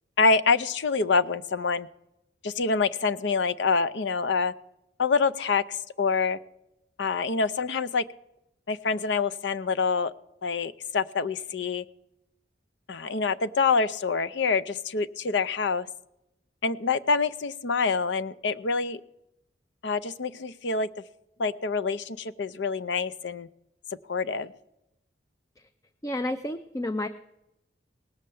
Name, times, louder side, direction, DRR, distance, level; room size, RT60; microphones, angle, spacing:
voice 1, 0.2-1.9 2.4-4.5 5.0-6.4 7.0-8.0 8.7-10.1 10.4-11.8 12.9-15.9 16.6-19.0 19.8-20.9 21.4-23.5 24.1-24.5, left 4 dB, 70° left, 15 dB, 0.6 m, -26 dB
voice 2, 26.0-27.1, left 1 dB, 15° left, 9 dB, 0.4 m, -30 dB
18.5 x 6.6 x 8.4 m, 0.88 s
head